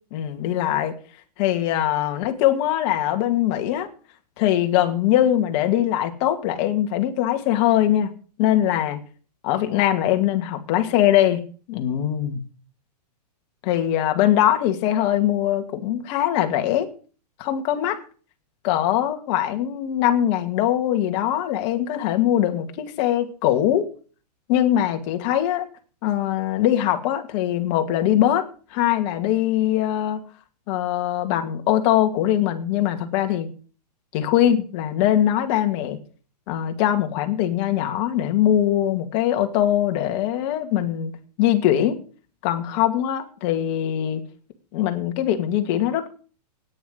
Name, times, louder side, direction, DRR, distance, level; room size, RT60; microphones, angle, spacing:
voice 1, 0.1-1.0 1.4-3.9 4.4-8.1 8.4-9.0 9.4-11.4 11.7-12.4 13.6-16.9 17.4-18.0 18.6-23.9 24.5-25.7 26.0-30.2 30.7-33.5 34.1-36.0 36.5-41.1 41.4-42.0 42.4-44.2 44.7-46.1, left 12 dB, 45° left, 6 dB, 2.4 m, -22 dB
10.0 x 8.8 x 9.6 m, 0.40 s
hypercardioid pair, 130°, 21 cm